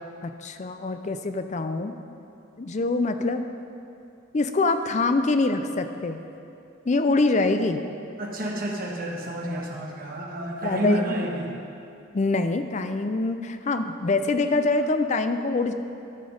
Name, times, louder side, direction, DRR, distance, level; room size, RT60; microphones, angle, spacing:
voice 1, 0.2-1.9 2.6-3.4 4.3-6.2 6.9-7.8 10.6-11.0 12.1-15.7, left 3 dB, 35° left, 8 dB, 0.4 m, -24 dB
voice 2, 8.2-11.5, equal, 45° right, -1 dB, 1.4 m, -29 dB
13.0 x 6.1 x 5.0 m, 2.6 s
head